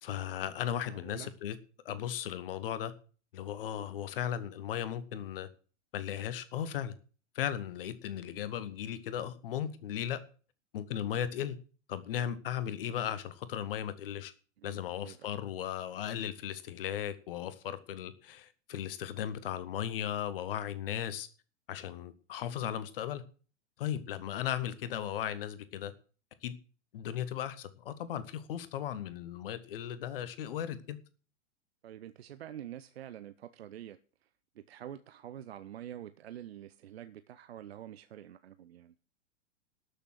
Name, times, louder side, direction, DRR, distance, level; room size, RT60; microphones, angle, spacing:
voice 1, 0.0-1.6 1.8-2.9 3.3-5.5 5.9-6.9 7.3-10.2 10.7-11.6 11.9-14.3 14.6-21.3 21.7-23.2 23.8-25.9 26.4-26.5 26.9-31.0, left 10 dB, 45° left, 1.3 m, -36 dB
voice 2, 0.9-1.3 14.6-15.4 31.8-34.3 34.5-38.9, right 11 dB, 55° right, 0.7 m, -47 dB
12.5 x 6.7 x 7.7 m
figure-of-eight pair, 105°, 38 cm